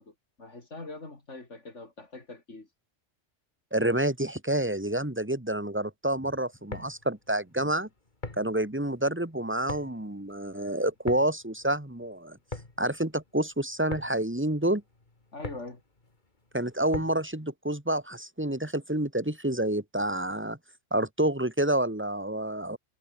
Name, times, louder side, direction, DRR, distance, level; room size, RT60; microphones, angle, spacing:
voice 1, 0.0-2.7 15.3-15.8, left 2 dB, 65° left, 4.4 m, -43 dB
voice 2, 3.7-7.9 8.4-12.4 12.8-14.8 16.5-20.6 20.9-22.8, right 1 dB, 10° right, 2.5 m, -28 dB
sound 1, 6.5-17.4, left 2 dB, 35° left, 2.9 m, -44 dB
omnidirectional pair, 1.3 m